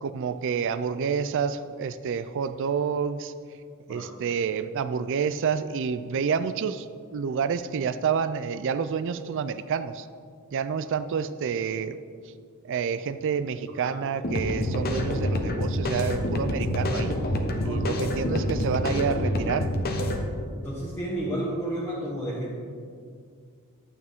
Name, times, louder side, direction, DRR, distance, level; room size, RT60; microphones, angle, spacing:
voice 1, 0.0-3.3 3.9-10.1 10.5-12.0 12.2-12.3 12.6-17.2 17.6-19.7, right 6 dB, 60° right, 12 dB, 0.4 m, -28 dB
sound 1, 14.2-20.2, left 1 dB, 45° left, 1.0 m, -27 dB
voice 2, 17.6-18.4 20.5-22.5, right 1 dB, 10° left, -8 dB, 1.4 m, -32 dB
12.0 x 8.2 x 3.6 m, 2.2 s
head